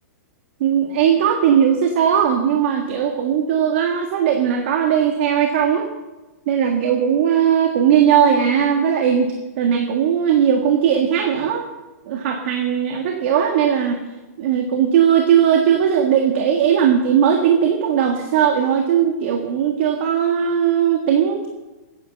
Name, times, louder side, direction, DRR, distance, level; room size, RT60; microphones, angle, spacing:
voice 1, 0.6-5.9 6.5-11.6 12.1-14.0 14.4-21.5, right 8 dB, 40° right, 3 dB, 1.7 m, -18 dB
15.5 x 10.0 x 7.8 m, 1.1 s
hypercardioid pair, 175°, 9 cm